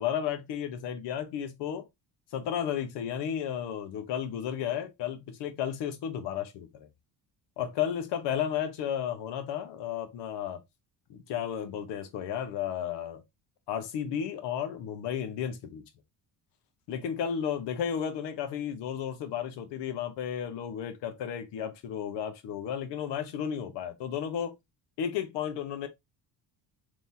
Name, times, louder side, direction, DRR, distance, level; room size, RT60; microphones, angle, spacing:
voice 1, 0.0-1.9 2.3-6.9 7.6-10.6 11.1-13.2 13.7-15.8 16.9-24.6 25.0-25.9, left 9 dB, 80° left, 1.0 m, -33 dB
3.5 x 3.0 x 2.7 m
cardioid pair, 115°, 42 cm